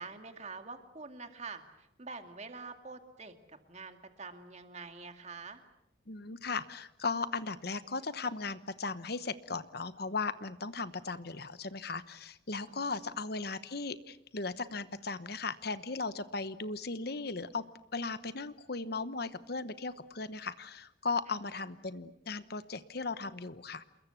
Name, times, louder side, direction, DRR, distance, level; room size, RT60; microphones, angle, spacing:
voice 1, 0.0-5.6 12.7-13.1 21.4-21.6, right 4 dB, 35° right, 7 dB, 2.3 m, -46 dB
voice 2, 6.1-17.6 17.9-23.9, left 4 dB, 50° left, 13 dB, 1.1 m, -37 dB
28.5 x 21.5 x 8.3 m, 0.85 s
head